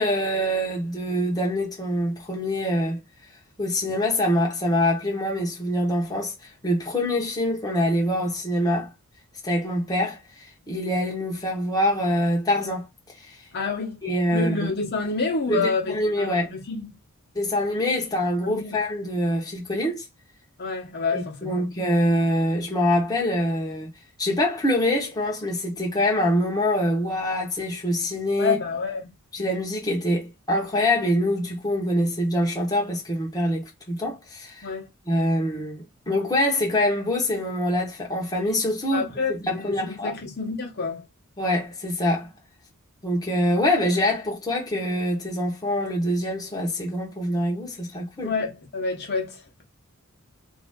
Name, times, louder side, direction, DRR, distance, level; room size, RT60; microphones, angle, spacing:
voice 1, 0.0-3.0 3.6-6.3 6.6-8.9 9.4-10.2 10.7-12.9 14.0-14.7 15.5-16.6 17.3-20.0 21.1-23.9 24.2-28.6 29.3-34.7 35.1-40.2 41.4-42.3 43.0-48.3, left 1 dB, 15° left, 0.9 m, -25 dB
voice 2, 13.5-14.0 14.3-16.9 18.4-18.8 20.6-21.6 28.4-29.1 34.6-34.9 38.9-41.0 48.2-49.4, left 4 dB, 50° left, 0.9 m, -28 dB
2.6 x 2.4 x 3.5 m
head